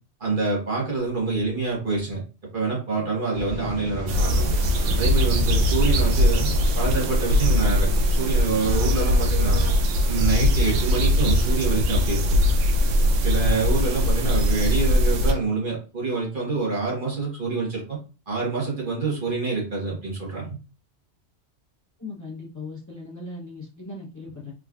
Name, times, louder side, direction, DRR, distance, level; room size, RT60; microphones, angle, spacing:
voice 1, 0.2-2.2 2.5-4.5 5.0-6.5 6.7-9.6 10.0-12.2 13.2-18.0 18.3-20.6, right 4 dB, 45° right, -3 dB, 1.4 m, -26 dB
Waves surf, 3.3-13.9, equal, 65° right, 1.2 m, -36 dB
sound 1, 4.1-15.3, left 1 dB, 85° right, 1.0 m, -21 dB
voice 2, 22.0-24.5, left 3 dB, 15° left, -4 dB, 0.8 m, -38 dB
3.6 x 3.0 x 2.4 m, 0.33 s
omnidirectional pair, 1.2 m